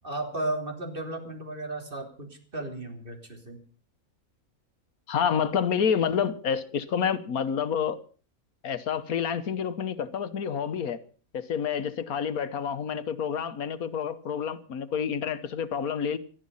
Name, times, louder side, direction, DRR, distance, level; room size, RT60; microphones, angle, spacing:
voice 1, 0.0-3.6, right 2 dB, 35° right, 3.5 m, -34 dB
voice 2, 5.1-8.0 8.6-11.0 11.3-16.2, left 7 dB, 85° left, 1.6 m, -28 dB
19.0 x 12.5 x 5.5 m
omnidirectional pair, 1.5 m